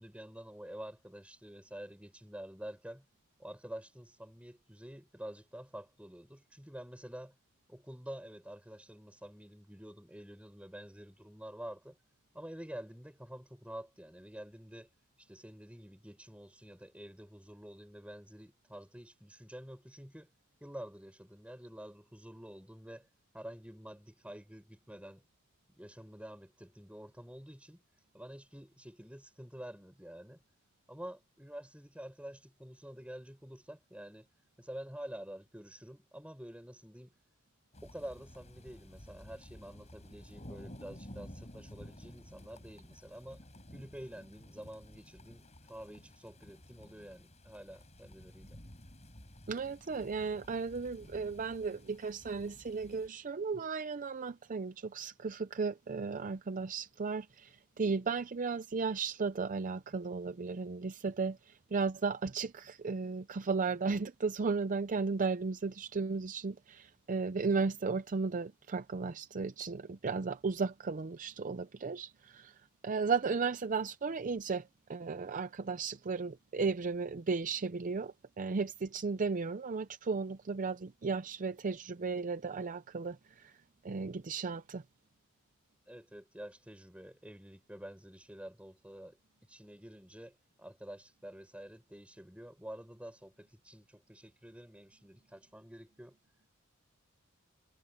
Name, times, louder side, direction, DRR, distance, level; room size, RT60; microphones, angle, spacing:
voice 1, 0.0-3.1 3.4-7.4 7.7-12.0 12.3-14.9 15.2-20.3 20.6-23.1 23.3-25.2 25.8-27.8 28.1-30.4 30.9-34.3 34.6-37.1 37.8-43.4 43.7-48.6 85.9-96.2, equal, 5° right, 7.2 m, -48 dB
sound 1, 37.7-53.1, equal, 30° left, 6.9 m, -53 dB
voice 2, 49.5-72.5 72.8-83.5 83.8-84.8, right 4 dB, 35° right, 0.5 m, -35 dB
head